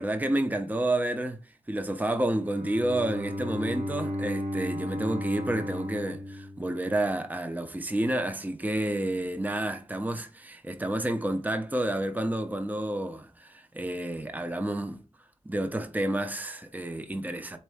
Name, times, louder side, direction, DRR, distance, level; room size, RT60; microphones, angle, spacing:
voice 1, 0.0-15.0 15.5-17.6, right 1 dB, 15° right, 0.6 m, -30 dB
Bowed string instrument, 2.3-7.3, left 1 dB, 80° right, 1.5 m, -35 dB
4.2 x 3.6 x 3.5 m
wide cardioid pair, 60°, 12 cm